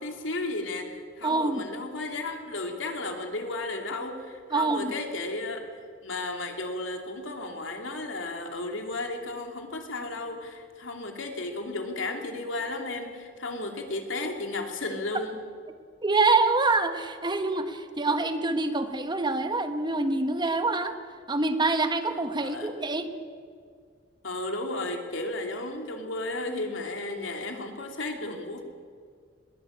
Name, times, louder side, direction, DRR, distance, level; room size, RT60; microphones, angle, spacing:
voice 1, 0.0-5.6 6.0-15.4 22.4-22.7 24.2-28.6, left 2 dB, 85° left, 3 dB, 3.0 m, -34 dB
voice 2, 1.2-1.7 4.5-4.9 16.0-20.9 21.3-23.1, right 3 dB, 25° right, 8 dB, 1.3 m, -26 dB
21.0 x 18.0 x 8.7 m, 2.1 s
head